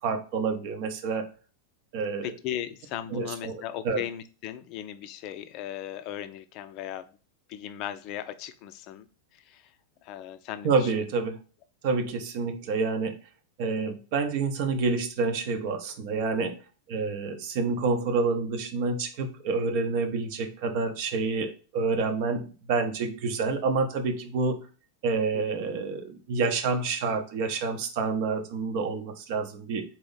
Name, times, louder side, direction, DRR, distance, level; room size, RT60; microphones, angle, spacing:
voice 1, 0.0-1.3 1.9-2.3 3.1-4.0 10.6-11.4 11.8-13.2 13.6-16.5 16.9-24.6 25.0-29.8, right 4 dB, 45° right, 7 dB, 0.7 m, -28 dB
voice 2, 2.2-7.1 7.5-9.1 9.3-9.7 10.0-10.9 25.3-25.4, left 11 dB, 40° left, 11 dB, 0.4 m, -37 dB
4.1 x 2.9 x 3.9 m, 0.36 s
figure-of-eight pair, 90°, 0 cm